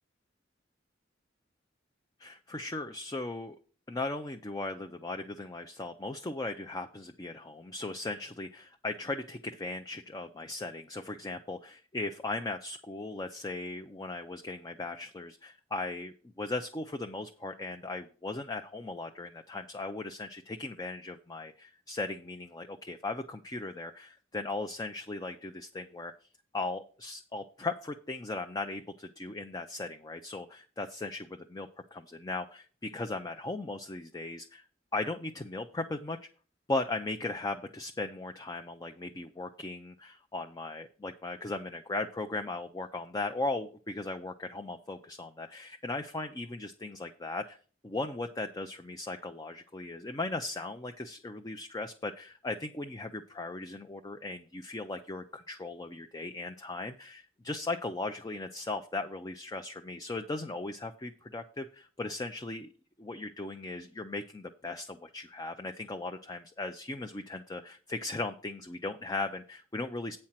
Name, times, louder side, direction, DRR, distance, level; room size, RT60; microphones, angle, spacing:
voice 1, 2.2-3.6 3.9-26.1 26.5-34.7 34.9-36.2 36.7-47.6 47.8-62.7 63.0-70.2, left 2 dB, 20° left, 6 dB, 0.5 m, -37 dB
8.7 x 4.4 x 7.3 m, 0.40 s
head